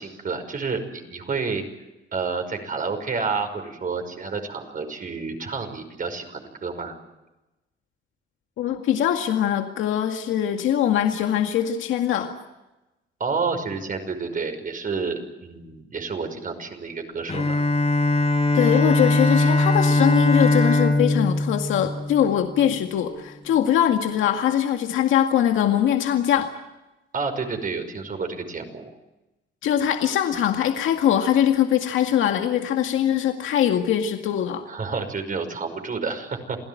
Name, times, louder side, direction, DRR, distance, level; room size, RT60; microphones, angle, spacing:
voice 1, 0.0-1.6 2.1-7.0 13.2-17.6 27.1-28.9 34.7-36.6, right 4 dB, 45° right, 6 dB, 5.7 m, -29 dB
voice 2, 8.6-12.3 18.5-26.5 29.6-34.6, left 10 dB, 85° left, 4 dB, 2.1 m, -22 dB
Bowed string instrument, 17.3-22.8, left 2 dB, 35° left, 4.1 m, -21 dB
28.0 x 17.0 x 9.2 m, 1.0 s
cardioid pair, 90°, 20 cm